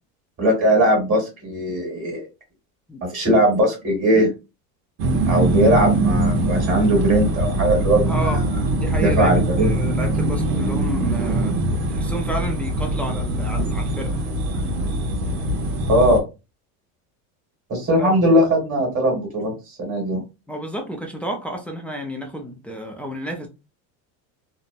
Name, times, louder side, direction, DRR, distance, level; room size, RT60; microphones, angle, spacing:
voice 1, 0.4-2.2 3.1-4.3 5.3-8.4 9.0-9.7 15.9-16.2 17.7-19.5 19.8-20.2, equal, 35° right, 1.7 m, -19 dB
sound 1, 5.0-16.2, right 2 dB, 80° right, 0.9 m, -22 dB
voice 2, 8.1-8.4 8.7-11.5 11.9-14.2 18.0-18.2 20.5-23.5, right 1 dB, 5° left, 0.4 m, -30 dB
2.9 x 2.1 x 2.5 m
supercardioid pair, 115°, 43 cm